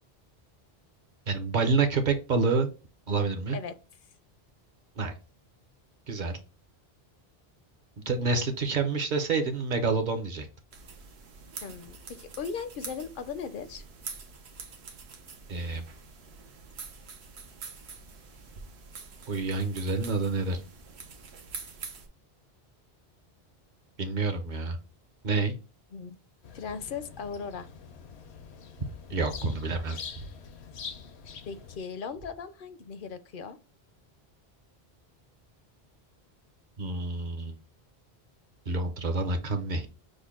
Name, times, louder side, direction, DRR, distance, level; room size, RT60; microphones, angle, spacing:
voice 1, 1.3-2.7 3.1-3.6 5.0-5.1 6.1-6.4 8.1-10.5 15.5-15.8 19.3-20.6 24.0-24.8 25.2-25.5 29.1-30.0 36.8-37.6 38.7-39.9, right 4 dB, 50° right, 0.8 m, -28 dB
sound 1, 10.7-22.1, right 5 dB, 85° right, 1.1 m, -45 dB
voice 2, 11.6-13.8 25.9-26.2 26.5-27.7 31.5-33.6, left 6 dB, 60° left, 0.6 m, -38 dB
sound 2, 26.4-31.8, left 6 dB, 85° left, 1.0 m, -45 dB
6.4 x 2.1 x 3.6 m
omnidirectional pair, 1.1 m